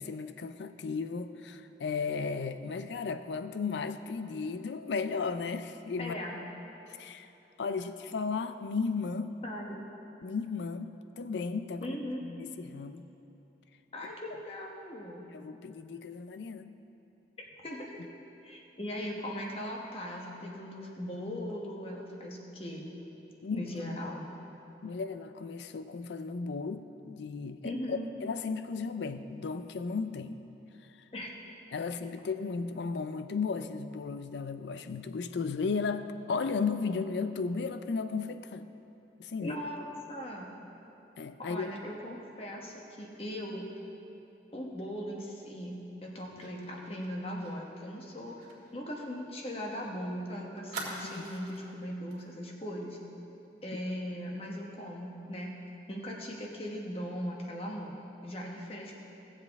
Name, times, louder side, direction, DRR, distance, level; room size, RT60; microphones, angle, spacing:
voice 1, 0.0-6.2 6.9-7.3 7.6-9.3 10.2-12.0 12.2-13.0 15.3-16.7 23.4-23.9 24.8-30.4 31.7-38.6 39.2-39.6 41.2-41.7 51.0-51.2, left 4 dB, 80° left, 10 dB, 0.4 m, -35 dB
voice 2, 6.0-6.4 9.4-9.8 11.8-12.2 13.9-15.2 17.4-17.9 18.4-22.9 23.5-24.3 27.6-28.1 31.1-31.3 39.4-40.6 41.4-43.7 44.5-53.0 53.6-55.5 55.9-58.9, equal, 30° left, -1 dB, 1.1 m, -39 dB
Fire, 46.4-49.8 50.1-50.2 50.7-51.7 52.1-52.3 52.6-52.8, right 3 dB, 55° right, 2.0 m, -45 dB
17.0 x 7.4 x 3.5 m, 3.0 s
head